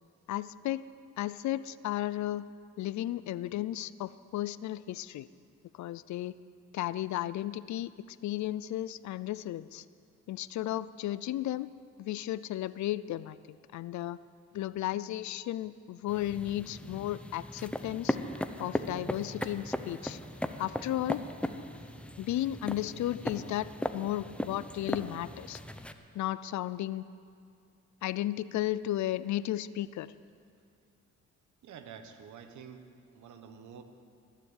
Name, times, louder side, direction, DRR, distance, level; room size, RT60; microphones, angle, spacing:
voice 1, 0.3-0.8 1.2-2.5 2.8-5.3 5.7-6.3 6.7-7.9 8.2-9.8 10.3-11.7 12.0-14.2 14.5-18.2 18.6-20.2 20.6-21.2 22.2-25.6 26.1-27.0 28.0-30.1, left 14 dB, 70° left, 17 dB, 0.5 m, -34 dB
sound 1, 16.1-25.9, left 1 dB, 5° left, 0.8 m, -37 dB
voice 2, 31.6-33.8, right 7 dB, 75° right, 8 dB, 1.4 m, -49 dB
21.5 x 7.6 x 8.2 m, 2.4 s
cardioid pair, 90°, 30 cm